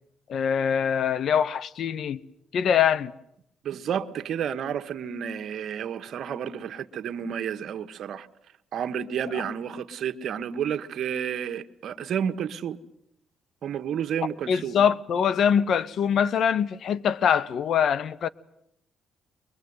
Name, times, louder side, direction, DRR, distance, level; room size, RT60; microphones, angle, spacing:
voice 1, 0.3-2.2 2.5-3.1 9.3-9.4 14.5-18.3, left 8 dB, 65° left, 1.0 m, -23 dB
voice 2, 3.6-8.3 8.7-12.8 13.6-14.7, right 8 dB, 65° right, 1.3 m, -31 dB
23.5 x 22.0 x 9.6 m
cardioid pair, 90°, 0 cm